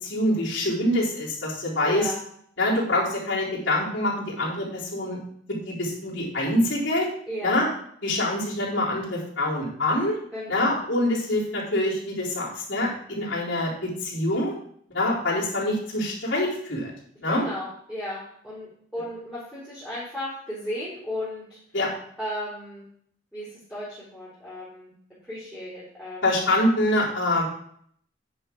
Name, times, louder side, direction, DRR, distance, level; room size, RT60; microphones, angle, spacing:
voice 1, 0.0-2.1 2.6-5.2 5.5-7.1 7.4-7.7 8.0-10.2 10.5-14.5 14.9-16.9 17.2-17.5 21.7-21.9 26.2-27.4, left 1 dB, 75° left, -7 dB, 4.1 m, -25 dB
voice 2, 1.8-2.2 7.3-7.6 8.0-8.4 10.3-10.8 17.3-21.6 22.2-22.9 23.3-24.9 25.3-26.3, left 1 dB, ahead, -10 dB, 3.8 m, -35 dB
10.0 x 6.0 x 4.7 m, 0.65 s
head